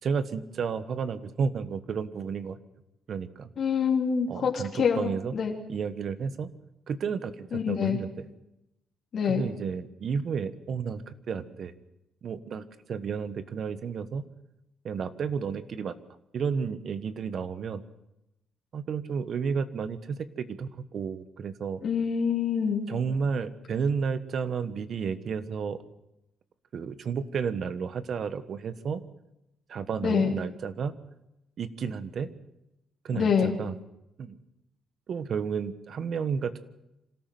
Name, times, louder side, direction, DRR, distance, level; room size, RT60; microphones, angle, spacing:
voice 1, 0.0-2.6 3.1-3.5 4.3-5.3 5.7-6.5 6.9-8.2 9.3-11.7 12.2-14.2 14.8-16.0 16.3-17.8 18.7-21.8 22.9-25.8 26.7-29.0 29.7-30.9 31.6-32.3 33.0-33.7 34.2-34.4 35.1-36.6, right 6 dB, 55° right, 13 dB, 1.3 m, -32 dB
voice 2, 3.6-5.5 7.5-8.0 9.1-9.4 21.8-22.9 30.0-30.3 33.1-33.5, left 6 dB, 60° left, 0 dB, 3.1 m, -26 dB
26.0 x 13.5 x 7.7 m, 0.89 s
cardioid pair, 90°, 0 cm